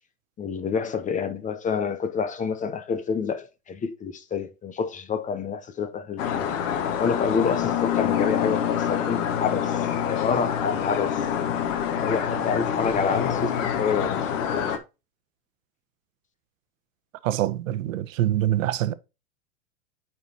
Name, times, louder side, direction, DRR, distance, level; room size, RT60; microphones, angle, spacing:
voice 1, 0.4-6.5 7.0-11.3 11.9-14.3, left 6 dB, 20° left, 0.7 m, -28 dB
sound 1, 6.2-14.8, left 8 dB, 60° left, 1.6 m, -26 dB
voice 2, 17.2-18.9, right 13 dB, 65° right, 0.9 m, -25 dB
9.1 x 4.5 x 2.9 m
hypercardioid pair, 110°, 42 cm